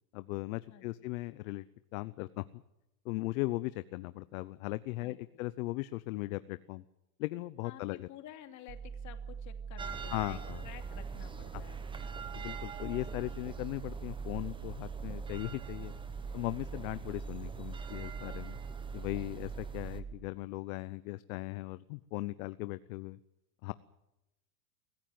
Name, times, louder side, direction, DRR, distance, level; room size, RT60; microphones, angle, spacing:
voice 1, 0.1-1.7 1.9-2.6 3.0-6.8 7.2-8.1 10.1-10.6 12.3-15.9 16.3-18.6 18.9-23.2 23.6-23.7, left 20 dB, 60° left, 15 dB, 0.9 m, -38 dB
voice 2, 0.7-1.1 5.0-5.5 7.6-11.8, left 12 dB, 35° left, 7 dB, 2.8 m, -52 dB
sound 1, 8.7-20.1, right 6 dB, 50° right, 3.5 m, -43 dB
sound 2, 9.8-20.0, right 4 dB, 10° right, 1.3 m, -46 dB
24.5 x 15.0 x 7.8 m, 0.91 s
supercardioid pair, 145°, 47 cm